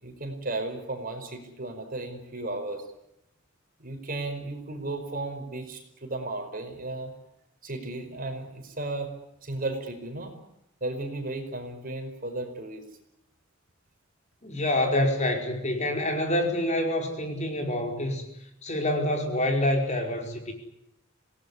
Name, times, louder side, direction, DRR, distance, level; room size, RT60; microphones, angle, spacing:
voice 1, 0.0-2.9 3.8-7.1 7.6-9.1 9.4-10.3 10.8-12.8, right 2 dB, 40° right, 5 dB, 5.2 m, -34 dB
voice 2, 14.4-18.3 18.6-20.5, left 1 dB, 35° left, 3 dB, 5.0 m, -26 dB
26.5 x 18.5 x 9.8 m, 0.81 s
head